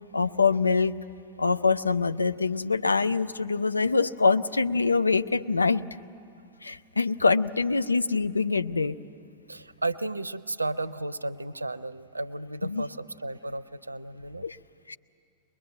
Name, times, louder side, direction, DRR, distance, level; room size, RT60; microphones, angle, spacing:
voice 1, 0.1-0.9 1.4-5.8 6.6-9.0 12.6-12.9 14.4-14.6 14.9-15.0, left 4 dB, 80° left, 11 dB, 0.5 m, -24 dB
voice 2, 9.5-14.4, right 2 dB, 80° right, 18 dB, 0.5 m, -33 dB
22.5 x 21.5 x 9.1 m, 2.3 s
figure-of-eight pair, 90°, 0 cm